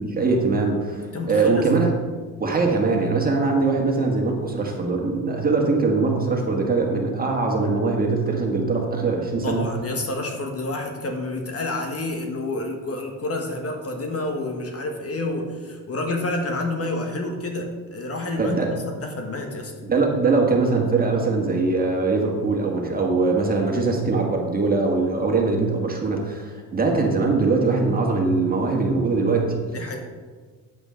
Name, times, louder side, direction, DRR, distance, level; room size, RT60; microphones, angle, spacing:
voice 1, 0.0-1.9 2.4-9.7 18.4-18.7 19.9-29.6, right 3 dB, 25° right, 1 dB, 1.9 m, -22 dB
voice 2, 1.1-1.6 9.4-19.7 29.7-30.0, left 2 dB, 40° left, 3 dB, 1.4 m, -29 dB
9.0 x 8.1 x 3.8 m, 1.5 s
supercardioid pair, 90°, 37 cm